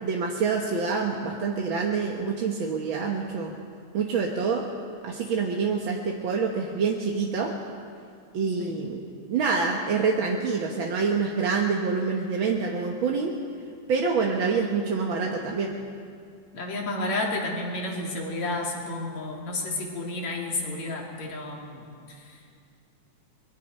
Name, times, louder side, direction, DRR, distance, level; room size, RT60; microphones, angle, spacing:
voice 1, 0.0-3.6 3.9-4.6 5.0-7.5 8.3-9.0 9.3-13.3 13.9-15.7, right 5 dB, 55° right, 0 dB, 1.6 m, -26 dB
voice 2, 16.5-21.8, left 2 dB, 65° left, -1 dB, 4.0 m, -31 dB
24.0 x 22.0 x 5.5 m, 2.3 s
omnidirectional pair, 3.4 m